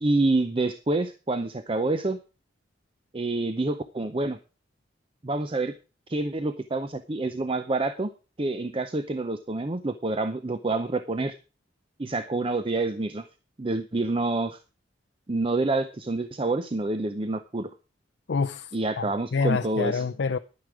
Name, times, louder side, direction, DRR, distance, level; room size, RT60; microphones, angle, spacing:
voice 1, 0.0-2.2 3.1-4.4 5.2-5.7 6.1-8.1 8.4-11.4 12.0-13.2 13.6-14.6 15.3-17.7 18.7-20.0, right 2 dB, 30° right, 0.6 m, -27 dB
voice 2, 18.3-20.4, left 5 dB, 65° left, 0.5 m, -27 dB
10.5 x 9.5 x 4.8 m
head